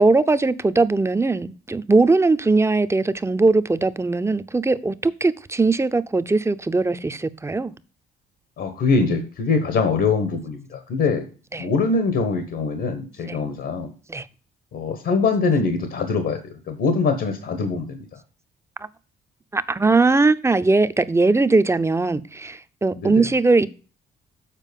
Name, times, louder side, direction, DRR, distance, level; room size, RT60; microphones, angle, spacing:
voice 1, 0.0-7.7 11.5-11.7 13.3-13.4 14.1-14.3 19.5-23.7, right 3 dB, 15° right, 0.5 m, -20 dB
voice 2, 8.6-11.3 11.6-13.9 14.7-18.0 22.9-23.3, left 4 dB, 75° left, 1.4 m, -23 dB
7.5 x 4.5 x 5.2 m
cardioid pair, 90°, 20 cm